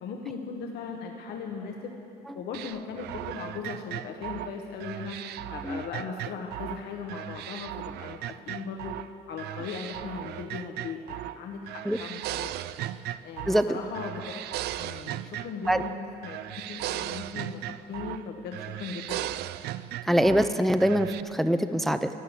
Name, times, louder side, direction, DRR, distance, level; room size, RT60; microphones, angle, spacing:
voice 1, 0.0-1.9 2.3-9.0 9.3-12.5 13.2-14.2 14.8-19.3, left 5 dB, 75° left, 2 dB, 1.1 m, -38 dB
sound 1, 2.5-6.8 7.1-9.1 9.4-11.4 11.7-13.7 13.9-16.0 16.2-18.2 18.5-20.5 20.8-21.2, right 14 dB, 75° right, 0.4 m, -37 dB
voice 2, 13.5-13.8 15.7-15.8 20.1-22.1, equal, ahead, 9 dB, 0.5 m, -23 dB
12.5 x 11.0 x 8.5 m, 2.9 s
cardioid pair, 110°, 17 cm